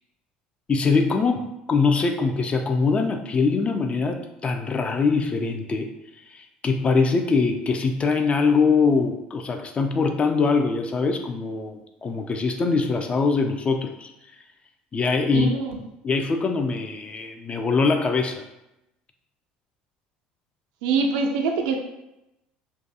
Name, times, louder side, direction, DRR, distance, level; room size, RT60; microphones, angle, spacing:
voice 1, 0.7-5.9 6.3-14.1 14.9-15.5 16.0-18.4, left 4 dB, 30° left, 5 dB, 0.3 m, -23 dB
voice 2, 15.3-15.8 20.8-21.8, right 4 dB, 75° right, 2 dB, 0.4 m, -24 dB
2.3 x 2.2 x 2.7 m, 0.91 s
hypercardioid pair, 75°, 4 cm